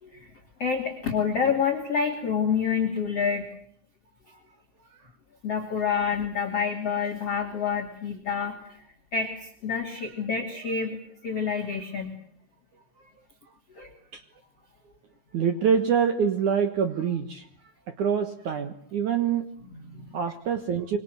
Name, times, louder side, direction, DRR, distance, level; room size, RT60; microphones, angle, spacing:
voice 1, 0.0-0.3 0.6-3.4 5.4-8.8 9.1-12.1 13.7-13.9 19.7-20.2, left 6 dB, 35° left, 1 dB, 3.1 m, -28 dB
voice 2, 15.3-17.4 18.0-19.6 20.1-21.0, right 7 dB, 75° right, 8 dB, 1.8 m, -25 dB
26.5 x 24.0 x 8.0 m, 0.64 s
omnidirectional pair, 5.6 m